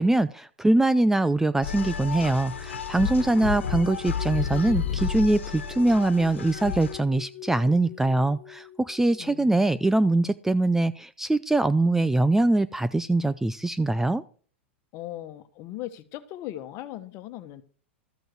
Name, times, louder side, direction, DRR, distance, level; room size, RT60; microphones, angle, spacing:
voice 1, 0.0-14.2, right 2 dB, 5° right, 15 dB, 0.5 m, -23 dB
sound 1, 1.6-7.0, left 7 dB, 80° left, 1.4 m, -32 dB
sound 2, 1.7-9.5, left 11 dB, 25° left, 1.7 m, -45 dB
voice 2, 3.0-3.5 9.2-9.9 14.9-17.6, left 13 dB, 45° left, 10 dB, 1.4 m, -39 dB
13.5 x 7.7 x 4.7 m, 0.42 s
hypercardioid pair, 100°, 6 cm